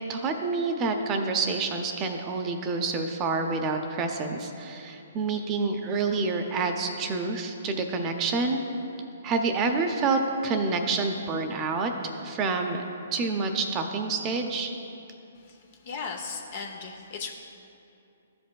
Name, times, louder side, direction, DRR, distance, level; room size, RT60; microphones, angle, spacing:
voice 1, 0.1-8.6 9.2-11.9 12.2-12.8 13.1-14.7, right 4 dB, 25° right, 4 dB, 0.6 m, -28 dB
voice 2, 15.8-17.3, left 5 dB, 50° left, 2 dB, 0.7 m, -36 dB
14.0 x 5.1 x 2.3 m, 2.7 s
hypercardioid pair, 130°, 0 cm